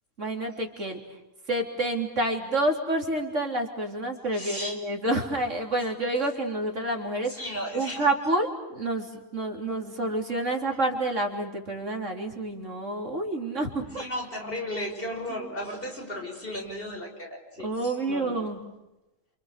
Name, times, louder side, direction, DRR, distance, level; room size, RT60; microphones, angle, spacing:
voice 1, 0.2-1.2 1.5-7.5 7.7-14.1 15.3-15.5 17.6-18.6, right 2 dB, 70° right, 2 dB, 3.9 m, -29 dB
voice 2, 4.3-4.8 7.3-8.1 13.8-18.5, left 1 dB, 45° left, 2 dB, 5.7 m, -35 dB
28.5 x 28.0 x 6.6 m, 0.96 s
omnidirectional pair, 1.3 m